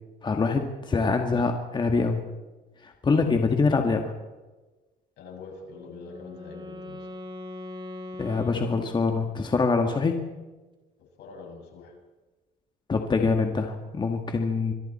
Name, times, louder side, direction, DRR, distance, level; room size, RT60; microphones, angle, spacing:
voice 1, 0.2-2.2 2.8-4.1 8.2-10.2 12.9-14.7, left 4 dB, 25° left, 4 dB, 2.0 m, -24 dB
voice 2, 5.2-7.1 11.0-11.9, left 4 dB, 75° left, 2 dB, 6.8 m, -44 dB
Wind instrument woodwind instrument, 5.6-9.5, left 1 dB, 30° right, 4.5 m, -41 dB
26.0 x 23.0 x 4.5 m, 1.2 s
cardioid pair, 110°, 17 cm